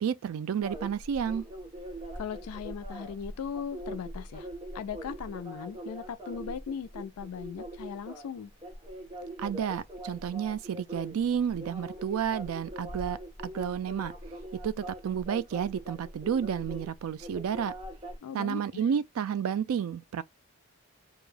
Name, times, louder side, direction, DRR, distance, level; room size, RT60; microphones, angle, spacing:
voice 1, 0.0-1.5 9.4-13.2 13.4-14.1 14.6-17.7 18.3-20.2, right 8 dB, 75° right, 0.3 m, -31 dB
sound 1, 0.6-18.2, right 1 dB, 25° right, 0.6 m, -42 dB
voice 2, 2.1-4.5 4.7-8.5 18.2-18.8, left 7 dB, 85° left, 0.4 m, -38 dB
2.2 x 2.0 x 3.1 m
head